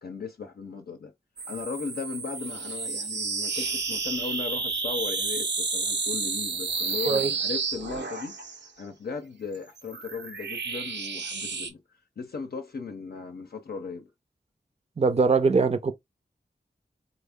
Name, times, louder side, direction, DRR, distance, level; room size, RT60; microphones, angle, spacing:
voice 1, 0.0-1.1 1.5-8.4 8.8-11.8 12.2-14.1, left 5 dB, 60° left, 0.6 m, -37 dB
sound 1, 1.4-8.7 9.5-11.7, right 4 dB, 85° right, 0.9 m, -31 dB
voice 2, 15.0-15.9, right 4 dB, 35° right, 0.5 m, -22 dB
3.5 x 2.1 x 3.5 m
wide cardioid pair, 80°, 18 cm